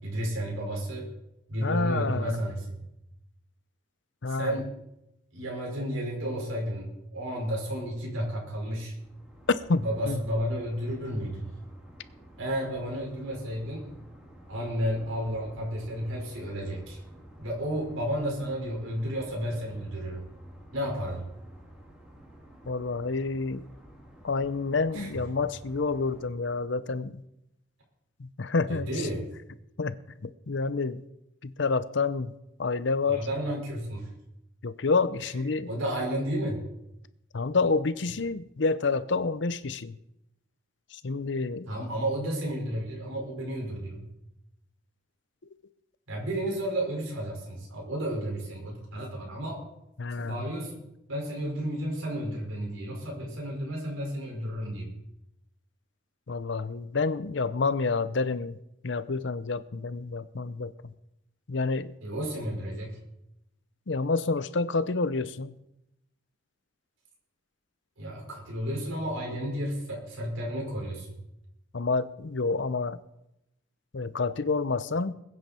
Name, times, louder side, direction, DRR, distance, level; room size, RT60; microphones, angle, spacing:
voice 1, 0.0-1.1 1.5-2.8 4.3-4.7 5.3-8.9 9.8-11.5 12.4-13.8 14.5-17.0 17.4-20.2 20.7-21.3 24.9-25.3 28.7-29.2 33.1-34.1 35.7-36.6 41.7-44.1 46.1-49.6 50.2-50.8 51.1-54.9 62.0-63.0 68.0-71.2, equal, 85° right, -2 dB, 5.3 m, -32 dB
voice 2, 1.6-2.4 4.2-4.5 9.5-10.2 22.7-23.6 24.2-27.2 28.2-28.9 29.8-29.9 30.2-31.0 31.4-32.3 32.6-33.3 34.6-35.7 37.3-40.0 40.9-41.7 50.0-50.5 56.3-58.6 58.8-60.9 61.5-61.9 63.9-65.6 71.7-73.0 73.9-75.1, left 4 dB, 60° left, 15 dB, 0.6 m, -28 dB
sound 1, 9.0-26.3, right 1 dB, 5° right, 2.8 m, -52 dB
21.0 x 9.6 x 4.4 m, 0.86 s
head